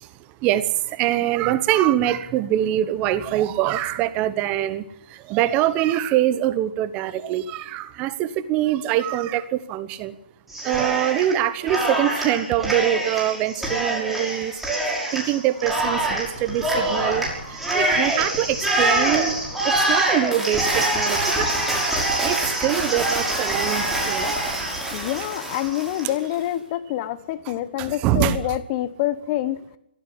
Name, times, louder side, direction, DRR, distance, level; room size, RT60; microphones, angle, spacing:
voice 1, 0.4-4.8 5.3-10.1 10.6-14.5 15.1-19.4 19.6-21.5 22.2-24.3 26.0-26.1 27.5-28.4, right 12 dB, 25° right, 15 dB, 1.1 m, -24 dB
Cheering, 10.5-11.4 11.7-26.1, right 1 dB, 5° right, 6.1 m, -24 dB
voice 2, 24.9-29.6, left 13 dB, 30° left, 14 dB, 1.4 m, -26 dB
23.0 x 15.0 x 9.7 m, 0.76 s
hypercardioid pair, 140°, 6 cm